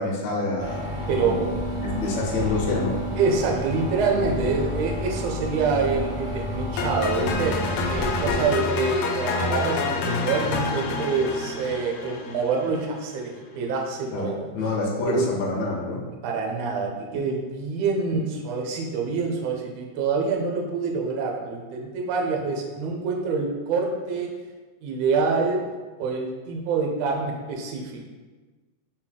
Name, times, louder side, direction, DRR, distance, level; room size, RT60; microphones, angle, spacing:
voice 1, 0.0-3.0 14.1-16.0, left 3 dB, 70° left, -3 dB, 1.9 m, -28 dB
sound 1, 0.6-8.5, equal, 70° right, 0.7 m, -30 dB
voice 2, 1.1-1.4 3.2-14.4 15.1-15.3 16.2-24.3 24.8-25.6 26.0-28.1, right 4 dB, 85° right, 1 dB, 1.4 m, -26 dB
sound 2, 6.8-12.9, left 3 dB, 90° left, 2.2 m, -28 dB
5.8 x 2.3 x 3.6 m, 1.3 s
omnidirectional pair, 3.7 m